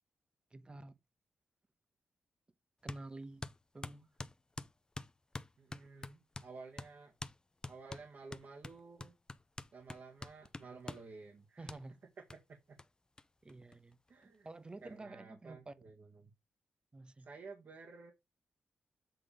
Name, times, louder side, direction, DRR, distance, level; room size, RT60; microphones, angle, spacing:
voice 1, 0.5-1.0 2.8-4.1 11.6-12.0 13.4-15.7 16.9-17.3, right 2 dB, 25° right, 1.0 m, -50 dB
sound 1, 2.9-3.0 3.4-6.5 6.8-6.9 7.2-7.4 7.6-11.1 11.7-11.8 12.3-12.4 12.8-12.9 13.2-13.3 13.5-14.2, left 2 dB, 20° left, 0.6 m, -46 dB
voice 2, 5.6-7.1 7.7-9.1 9.7-11.7 12.7-12.8 14.1-14.5 14.8-16.3 17.2-18.1, right 4 dB, 60° right, 1.8 m, -53 dB
8.0 x 3.8 x 5.0 m
cardioid pair, 70°, 4 cm